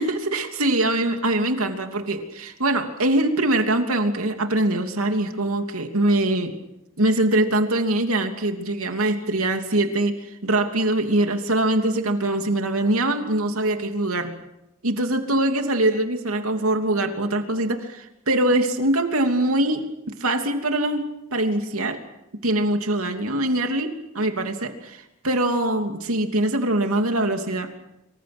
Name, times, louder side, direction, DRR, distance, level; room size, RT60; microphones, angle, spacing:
voice 1, 0.0-6.6 7.0-10.2 10.4-14.3 14.8-22.0 22.4-27.7, right 1 dB, 85° right, 5 dB, 3.0 m, -23 dB
26.5 x 25.0 x 6.2 m, 0.87 s
head